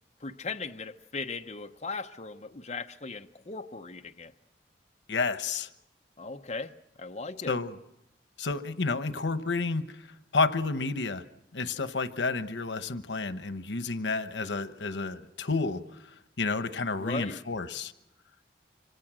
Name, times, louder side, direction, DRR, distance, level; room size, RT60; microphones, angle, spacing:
voice 1, 0.2-4.3 6.2-7.5 17.0-17.4, left 4 dB, 35° left, 5 dB, 0.8 m, -38 dB
voice 2, 5.1-5.7 7.5-7.8 8.4-9.8 10.3-11.2 11.5-15.8 16.4-17.9, left 3 dB, 90° left, 11 dB, 1.0 m, -30 dB
26.5 x 25.0 x 6.2 m, 0.84 s
head